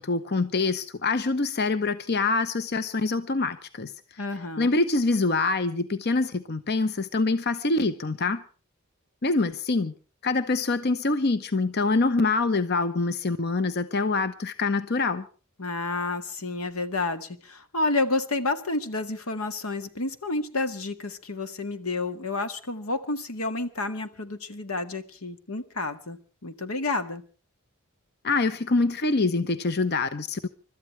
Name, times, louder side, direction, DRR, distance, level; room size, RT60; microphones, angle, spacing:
voice 1, 0.0-4.2 4.6-8.4 9.2-9.9 10.2-15.3 28.2-30.5, left 3 dB, 50° left, 12 dB, 0.8 m, -25 dB
voice 2, 4.2-4.7 15.6-27.2, left 2 dB, 85° left, 8 dB, 1.8 m, -30 dB
30.0 x 13.5 x 3.2 m, 0.37 s
head